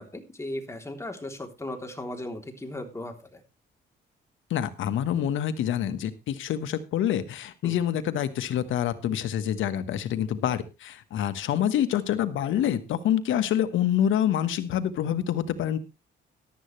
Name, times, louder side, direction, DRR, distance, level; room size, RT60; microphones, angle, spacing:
voice 1, 0.0-3.4 7.6-7.8, left 1 dB, 15° left, 4 dB, 3.4 m, -37 dB
voice 2, 4.5-15.8, left 10 dB, 80° left, 12 dB, 1.5 m, -26 dB
14.0 x 11.5 x 3.3 m, 0.28 s
cardioid pair, 90°, 20 cm